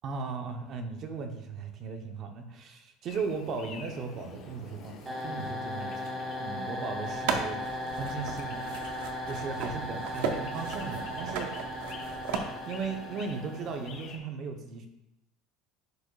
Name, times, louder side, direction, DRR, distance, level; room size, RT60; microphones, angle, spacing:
voice 1, 0.0-7.6 8.0-8.7 9.3-11.5 12.7-14.9, right 4 dB, 35° right, 5 dB, 0.7 m, -37 dB
sound 1, 3.1-14.2, left 4 dB, 40° left, 1.0 m, -48 dB
sound 2, 5.0-14.0, equal, 15° right, 1.0 m, -37 dB
sound 3, 7.0-12.4, right 6 dB, 75° right, 0.8 m, -36 dB
10.5 x 5.1 x 2.2 m, 0.91 s
cardioid pair, 180°, 0 cm